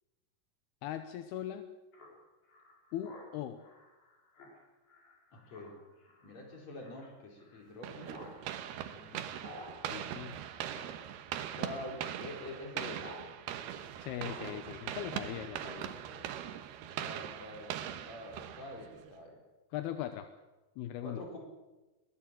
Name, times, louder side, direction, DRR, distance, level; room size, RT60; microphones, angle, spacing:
voice 1, 0.8-1.7 2.9-3.6 9.9-10.4 14.0-16.0 19.7-20.3 20.8-21.2, left 11 dB, 80° left, 9 dB, 2.8 m, -39 dB
Speech synthesizer, 1.9-13.2 13.5-15.8, left 2 dB, 65° left, 6.9 m, -55 dB
voice 2, 5.3-5.8 6.2-8.3 9.0-9.2 11.5-13.1 16.1-16.5 17.0-17.8 18.0-19.4 21.0-21.4, left 1 dB, 40° left, 1 dB, 5.5 m, -46 dB
sound 1, 7.8-19.1, right 10 dB, 75° right, 3.0 m, -41 dB
22.0 x 17.5 x 7.6 m, 1.1 s
omnidirectional pair, 4.8 m